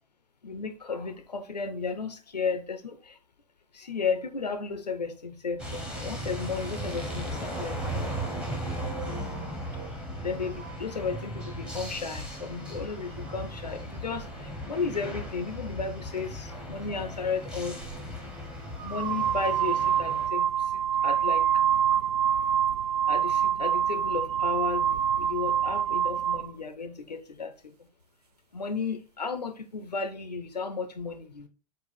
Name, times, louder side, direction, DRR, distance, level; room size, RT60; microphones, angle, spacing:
voice 1, 0.4-3.2 3.7-7.9 9.6-9.8 10.2-17.8 18.8-21.6 23.1-27.9 28.5-31.5, left 5 dB, 85° left, 0.4 m, -34 dB
sound 1, 5.6-20.3, equal, 5° right, 1.1 m, -36 dB
sound 2, 17.8-18.0 18.8-26.5, right 9 dB, 70° right, 0.4 m, -26 dB
4.5 x 2.4 x 4.0 m
figure-of-eight pair, 90°, 21 cm